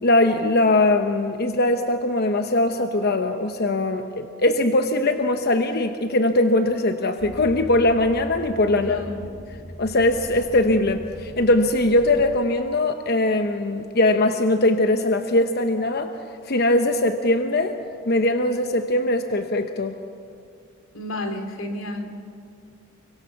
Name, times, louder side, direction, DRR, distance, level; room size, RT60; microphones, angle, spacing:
voice 1, 0.0-9.0 9.8-16.1 16.5-17.8 18.1-20.0, left 2 dB, 50° left, 7 dB, 1.0 m, -21 dB
sound 1, 7.2-12.4, equal, 10° left, 3.3 m, -40 dB
voice 2, 8.7-9.2 20.9-22.1, left 1 dB, 90° left, 6 dB, 2.8 m, -31 dB
29.5 x 23.5 x 7.1 m, 2.4 s
head